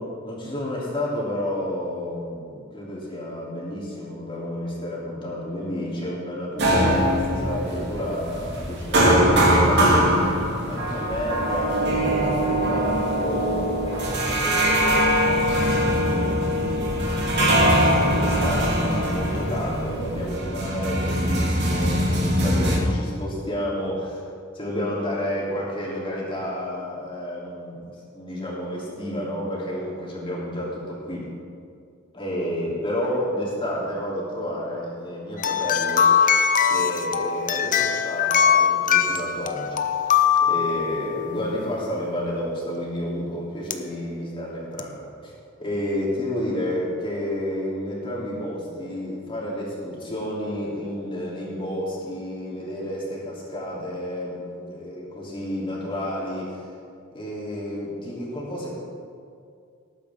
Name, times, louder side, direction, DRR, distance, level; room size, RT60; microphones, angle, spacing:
voice 1, 0.0-10.0 10.7-14.1 14.4-17.3 17.8-24.2 24.5-27.9 28.1-31.2 32.1-36.4 36.7-56.7 57.1-58.7, left 1 dB, 25° left, -6 dB, 3.2 m, -31 dB
sound 1, 6.6-22.8, equal, 55° right, 2.2 m, -22 dB
sound 2, 35.4-41.4 43.7-43.8 44.8-44.9, left 7 dB, 40° left, 0.6 m, -21 dB
18.5 x 9.1 x 3.7 m, 2.4 s
head